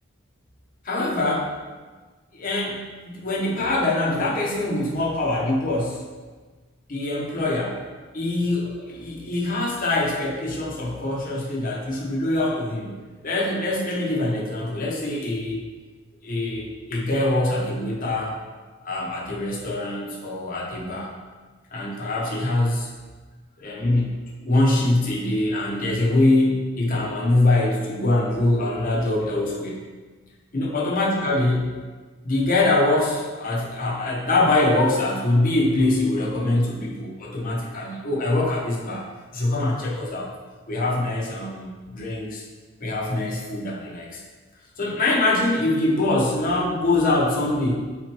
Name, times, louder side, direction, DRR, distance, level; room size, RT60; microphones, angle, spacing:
voice 1, 0.8-1.6 2.3-6.0 6.9-7.8 8.1-12.9 13.2-15.6 16.2-18.4 18.8-21.1 21.7-22.9 23.6-29.8 30.5-31.7 32.2-39.0 39.3-40.3 40.7-42.4 42.8-44.2 44.8-47.9, left 2 dB, 40° left, -4 dB, 0.8 m, -23 dB
4.0 x 2.9 x 4.4 m, 1.3 s
head